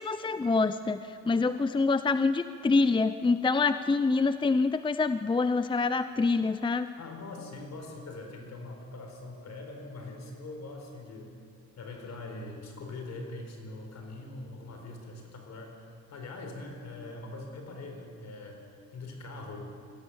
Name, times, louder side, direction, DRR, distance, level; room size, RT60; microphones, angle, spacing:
voice 1, 0.0-6.9, left 4 dB, 15° left, 12 dB, 0.6 m, -26 dB
voice 2, 7.0-11.3 11.8-18.6 18.9-19.7, left 2 dB, 60° left, 3 dB, 4.5 m, -42 dB
22.5 x 16.5 x 7.3 m, 2.4 s
cardioid pair, 90°, 30 cm